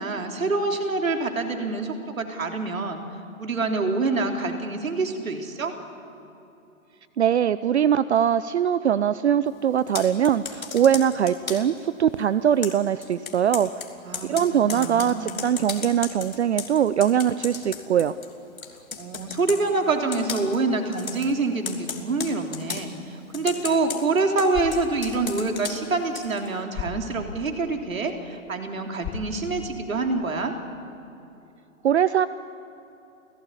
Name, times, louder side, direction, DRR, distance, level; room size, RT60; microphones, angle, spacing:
voice 1, 0.0-3.0 3.4-5.7 14.0-15.5 19.0-30.5, right 3 dB, 70° right, 4 dB, 3.5 m, -26 dB
voice 2, 7.2-13.7 14.2-18.1 31.8-32.3, right 9 dB, 55° right, 16 dB, 0.7 m, -22 dB
Computer keyboard, 9.8-11.8 12.6-18.3 18.6-19.6 20.1-20.6 20.9-21.3 21.7-22.9 23.3-26.5, left 5 dB, 75° left, 3.1 m, -35 dB
sound 1, 24.3-30.4, left 6 dB, 20° left, 3.4 m, -40 dB
28.5 x 17.0 x 9.8 m, 2.9 s
figure-of-eight pair, 125°, 42 cm